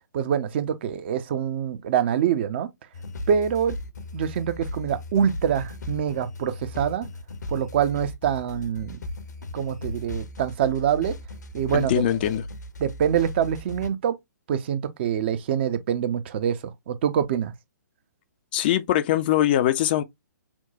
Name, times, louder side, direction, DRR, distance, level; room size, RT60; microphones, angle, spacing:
voice 1, 0.1-2.7 3.3-3.8 4.1-7.1 7.5-9.0 9.5-11.2 11.5-11.9 12.8-14.2 14.5-17.5, right 8 dB, 35° right, 0.5 m, -25 dB
sound 1, 2.9-13.9, left 1 dB, 65° left, 0.8 m, -37 dB
voice 2, 11.7-12.4 18.5-20.0, left 12 dB, 30° left, 0.4 m, -22 dB
5.8 x 2.1 x 2.6 m
figure-of-eight pair, 125°, 10 cm